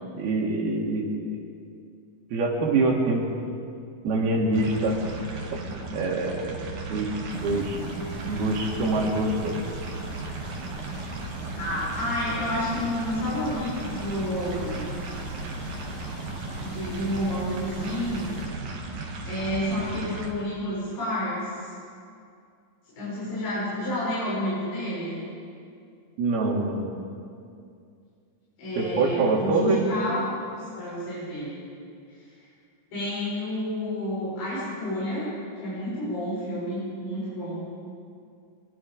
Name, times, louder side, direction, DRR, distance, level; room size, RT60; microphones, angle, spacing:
voice 1, 0.1-1.3 2.3-3.2 4.0-5.0 5.9-6.6 6.9-7.8 8.3-9.6 26.2-26.9 28.8-29.8, right 2 dB, 90° right, -1 dB, 4.5 m, -25 dB
sound 1, 4.5-20.3, right 3 dB, 60° right, 3.5 m, -36 dB
sound 2, 7.3-18.4, left 1 dB, 45° left, 5.8 m, -41 dB
voice 2, 11.4-14.9 16.6-18.3 19.2-21.7 22.9-25.2 28.6-30.2 30.6-31.5 32.9-35.3 35.6-37.7, left 1 dB, 65° left, -10 dB, 8.6 m, -30 dB
24.5 x 23.5 x 5.0 m, 2.4 s
omnidirectional pair, 4.3 m